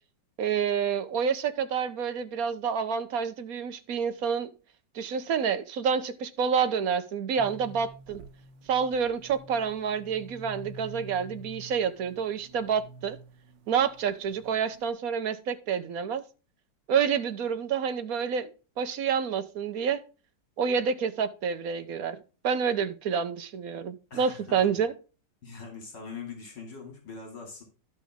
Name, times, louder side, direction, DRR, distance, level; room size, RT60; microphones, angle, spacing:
voice 1, 0.4-4.5 4.9-8.2 8.7-13.2 13.7-16.2 16.9-18.5 18.8-20.0 20.6-22.2 22.4-24.9, right 7 dB, 60° right, 1.3 m, -28 dB
sound 1, 7.4-14.9, right 1 dB, 85° right, 1.6 m, -48 dB
voice 2, 24.1-24.8 25.4-27.6, left 5 dB, 70° left, 3.2 m, -42 dB
12.5 x 6.2 x 3.7 m
omnidirectional pair, 1.9 m